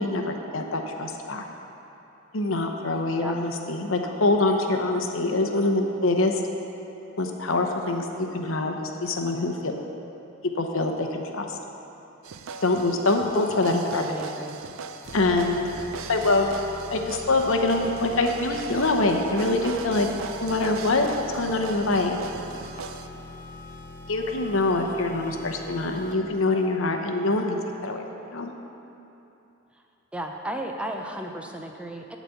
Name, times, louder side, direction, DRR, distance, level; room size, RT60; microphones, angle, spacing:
voice 1, 0.0-1.4 2.3-6.4 7.2-9.7 10.6-11.6 12.6-14.0 15.1-15.6 16.1-16.5 16.9-20.1 20.4-21.1 21.3-22.2 24.1-28.5, left 2 dB, 65° left, 4 dB, 0.8 m, -24 dB
sound 1, 12.2-23.1, right 5 dB, 70° right, 0.4 m, -39 dB
voice 2, 13.7-14.6 30.1-32.2, right 1 dB, 5° right, 2 dB, 0.4 m, -34 dB
sound 2, 15.0-26.4, left 2 dB, 35° left, 0.8 m, -43 dB
12.0 x 4.1 x 8.0 m, 3.0 s
head